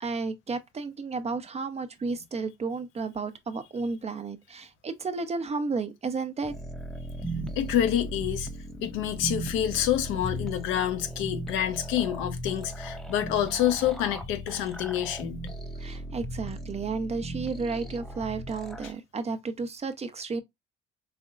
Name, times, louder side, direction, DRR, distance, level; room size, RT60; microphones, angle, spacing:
voice 1, 0.0-6.5 15.8-20.4, right 4 dB, 30° right, 0.7 m, -32 dB
Deep gated vocal, 6.4-18.9, right 1 dB, ahead, 0.7 m, -37 dB
voice 2, 7.6-8.5 8.8-15.4 18.8-18.9, left 11 dB, 80° left, 0.8 m, -27 dB
4.1 x 2.9 x 2.4 m
supercardioid pair, 70°, 20 cm